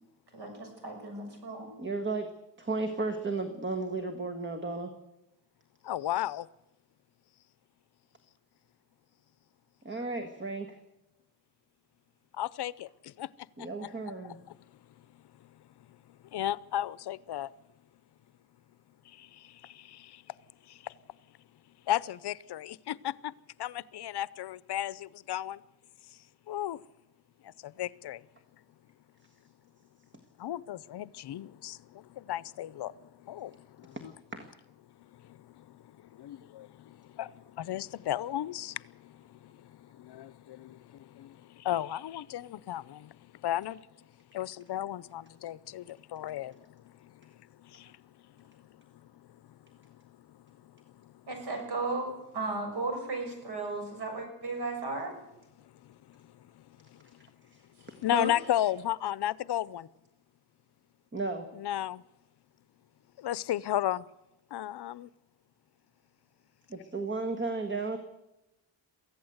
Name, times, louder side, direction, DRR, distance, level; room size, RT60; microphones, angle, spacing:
voice 1, 0.3-1.7 51.3-55.1, right 3 dB, 65° right, 6.8 m, -35 dB
voice 2, 1.8-2.3 2.6-4.9 9.8-10.8 13.6-14.4 58.1-58.3 61.1-61.4 66.7-68.0, right 3 dB, 25° right, 1.7 m, -33 dB
voice 3, 5.8-6.5 12.3-13.3 13.6-13.9 14.2-14.6 16.3-17.5 19.1-20.2 20.7-20.9 21.9-23.3 23.6-25.6 26.5-26.8 27.4-28.2 30.4-34.1 35.1-35.8 36.1-43.9 44.3-47.1 47.6-48.0 50.3-50.4 51.0-51.1 55.9-56.2 56.5-57.0 58.0-59.9 61.5-62.0 63.2-64.0 64.5-65.1, left 12 dB, 65° left, 0.7 m, -35 dB
23.5 x 15.5 x 8.0 m
wide cardioid pair, 135°, 43 cm